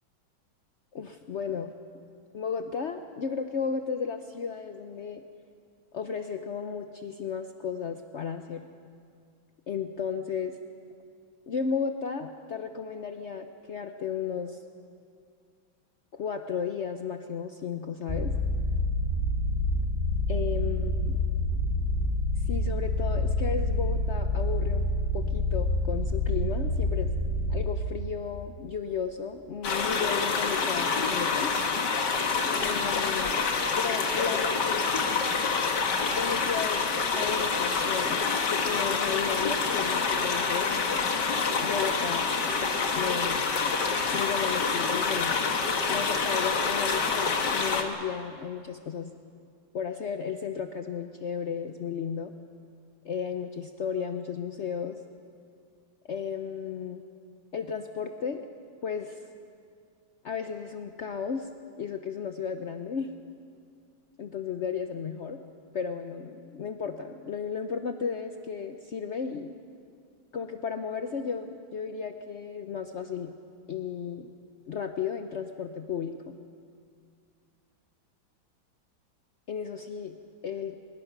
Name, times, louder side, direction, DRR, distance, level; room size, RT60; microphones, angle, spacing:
voice 1, 0.9-1.7 2.3-5.2 5.9-8.7 9.7-10.5 11.5-14.6 16.1-18.3 20.3-21.2 22.5-24.9 25.1-27.1 27.5-31.5 32.6-33.4 33.8-34.9 36.1-36.9 37.1-38.2 38.5-41.0 41.6-42.3 42.9-43.5 44.1-45.3 45.9-49.1 49.7-52.3 53.0-55.0 56.0-57.0 57.5-58.5 58.8-59.2 60.2-61.5 61.8-63.1 64.2-65.4 65.7-69.6 70.3-73.3 73.7-74.3 74.7-76.4 79.5-80.2 80.4-80.8, left 6 dB, 80° left, 7 dB, 0.6 m, -34 dB
sound 1, 18.1-27.7, left 1 dB, 5° left, 3.4 m, -27 dB
Ocoee River, 29.6-47.8, left 5 dB, 60° left, 2.0 m, -27 dB
23.5 x 21.0 x 6.0 m, 2.3 s
omnidirectional pair, 2.2 m